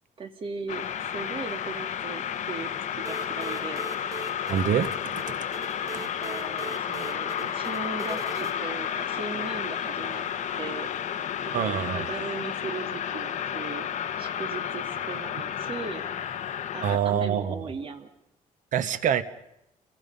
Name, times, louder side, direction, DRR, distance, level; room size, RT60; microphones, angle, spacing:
voice 1, 0.2-3.8 6.0-10.3 10.6-10.9 11.4-13.9 14.2-16.0 16.7-18.1, right 4 dB, 40° right, 6 dB, 2.4 m, -38 dB
sound 1, 0.7-17.0, left 9 dB, 60° left, 1.4 m, -32 dB
sound 2, 3.0-8.5, right 5 dB, 20° right, 1.2 m, -41 dB
voice 2, 4.5-5.4 11.5-12.1 16.8-17.5 18.7-19.2, right 9 dB, 65° right, 12 dB, 1.3 m, -26 dB
30.0 x 23.0 x 5.5 m, 0.79 s
cardioid pair, 175°, 14 cm